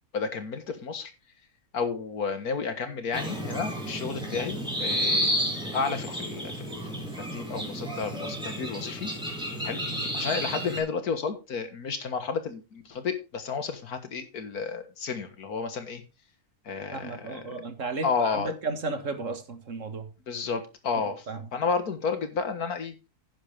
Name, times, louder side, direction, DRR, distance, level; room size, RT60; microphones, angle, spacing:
voice 1, 0.1-1.1 1.7-5.4 5.7-6.8 7.2-9.1 9.6-9.8 10.1-16.0 16.7-17.6 18.0-18.5 20.3-21.1 21.5-23.0, left 5 dB, 75° left, 2.0 m, -31 dB
sound 1, 3.1-10.8, equal, 5° right, 4.5 m, -31 dB
voice 2, 16.9-20.1 21.0-21.5, right 3 dB, 55° right, 1.9 m, -34 dB
11.0 x 9.8 x 3.4 m
omnidirectional pair, 1.6 m